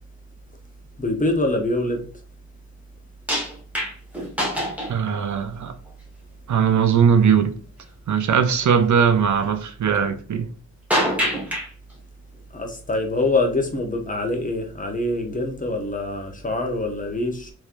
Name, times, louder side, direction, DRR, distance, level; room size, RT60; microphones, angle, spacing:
voice 1, 1.0-2.0 12.5-17.5, left 2 dB, 25° left, 0.9 m, -24 dB
sound 1, 3.3-5.2 5.9-6.0 10.9-11.7 13.2-13.3, equal, 5° right, 1.4 m, -24 dB
voice 2, 4.9-5.7 6.5-7.5 8.1-10.5, right 7 dB, 60° right, 0.6 m, -19 dB
3.7 x 3.1 x 2.5 m
wide cardioid pair, 105°, 33 cm